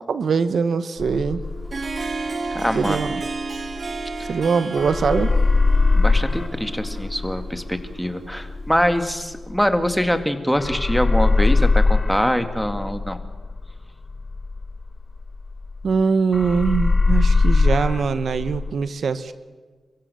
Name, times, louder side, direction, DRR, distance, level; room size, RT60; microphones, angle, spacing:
voice 1, 0.1-1.4 2.7-3.1 4.3-5.3 15.8-19.3, right 5 dB, 70° right, 12 dB, 1.1 m, -22 dB
sound 1, 1.0-4.5 4.8-10.2 10.5-16.0 16.3-18.7, left 3 dB, 40° left, 1.5 m, -22 dB
Harp, 1.4-9.2, right 3 dB, 50° right, 2.3 m, -33 dB
voice 2, 2.5-3.0 4.2-4.3 5.9-13.2, equal, ahead, 8 dB, 2.2 m, -23 dB
29.0 x 16.0 x 7.0 m, 1.4 s
cardioid pair, 65°, 0 cm